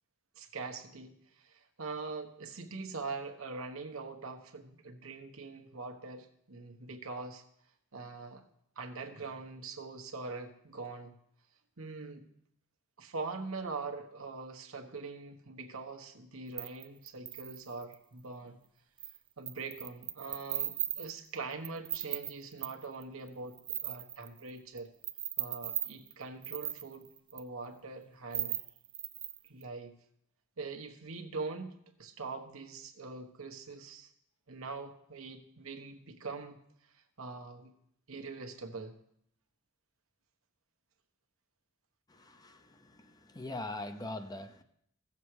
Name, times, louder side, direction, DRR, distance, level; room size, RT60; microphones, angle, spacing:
voice 1, 0.4-7.4 7.9-8.4 8.8-11.1 11.8-12.3 13.0-18.6 19.4-24.9 25.4-28.6 29.4-29.9 30.6-31.7 32.0-34.1 34.5-36.6 36.9-37.7 38.1-38.9, right 3 dB, 80° right, 4 dB, 1.3 m, -43 dB
sound 1, 16.6-17.9 19.0-19.2 19.5-23.0 23.3-24.8 25.0-27.4 28.3-29.6, right 10 dB, 25° right, 0.5 m, -37 dB
voice 2, 42.1-44.6, left 2 dB, 20° left, 8 dB, 0.7 m, -42 dB
15.5 x 7.3 x 4.8 m, 0.71 s
head